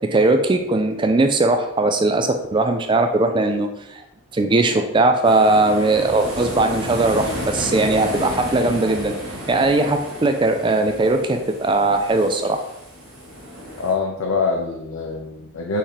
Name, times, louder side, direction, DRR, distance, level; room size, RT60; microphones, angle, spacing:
voice 1, 0.1-4.0 4.3-9.1 9.5-12.6, right 2 dB, 20° right, 5 dB, 0.3 m, -19 dB
sound 1, 5.2-13.9, equal, 85° right, 1.3 m, -32 dB
voice 2, 13.8-15.8, left 4 dB, 70° left, 0 dB, 0.5 m, -24 dB
3.6 x 3.3 x 4.3 m, 0.83 s
head